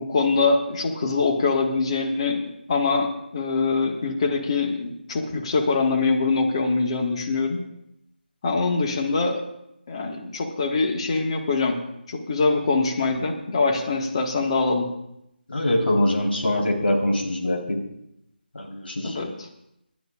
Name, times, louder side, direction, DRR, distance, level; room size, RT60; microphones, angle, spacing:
voice 1, 0.0-7.6 8.4-9.4 9.9-11.8 12.1-14.9 19.0-19.5, left 4 dB, 30° left, 2 dB, 1.7 m, -23 dB
voice 2, 15.5-17.8 18.5-19.2, left 1 dB, 70° left, 0 dB, 3.9 m, -23 dB
27.5 x 12.0 x 2.5 m, 0.81 s
figure-of-eight pair, 160°, 6 cm